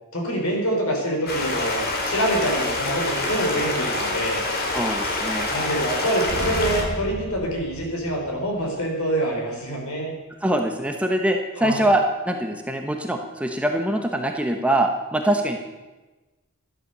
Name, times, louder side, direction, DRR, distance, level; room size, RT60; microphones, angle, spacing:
voice 1, 0.1-4.4 5.5-10.1 11.6-11.8, right 1 dB, 70° left, 0 dB, 4.1 m, -25 dB
Stream, 1.3-6.8, left 2 dB, 45° left, 2.5 m, -26 dB
voice 2, 4.7-5.5 10.4-15.6, right 1 dB, 5° right, 3 dB, 1.0 m, -23 dB
sound 1, 6.3-9.0, right 1 dB, 75° right, 2.2 m, -33 dB
12.5 x 11.5 x 6.7 m, 1.2 s
head